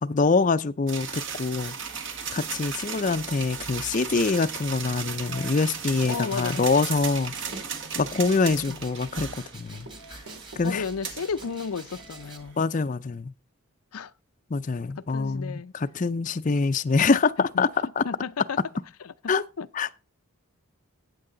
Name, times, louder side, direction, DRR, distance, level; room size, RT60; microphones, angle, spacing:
voice 1, 0.0-1.7 2.3-7.3 8.0-10.2 10.6-10.8 12.6-13.3 14.5-17.7 18.0-18.1 19.3-19.4 19.7-20.0, left 4 dB, 35° left, 0.4 m, -25 dB
sound 1, 0.9-12.6, right 6 dB, 55° right, 1.6 m, -36 dB
voice 2, 6.1-6.7 8.7-8.8 10.6-12.6 13.9-14.1 15.0-15.7 17.5-17.7 18.0-18.6 19.0-19.7, left 5 dB, 85° left, 0.6 m, -33 dB
Walk footsteps, 6.1-8.5 8.8-10.7 11.0-12.5, right 1 dB, 85° right, 2.9 m, -48 dB
sound 2, 6.3-12.4, right 4 dB, 20° right, 1.8 m, -48 dB
13.0 x 9.0 x 3.8 m
head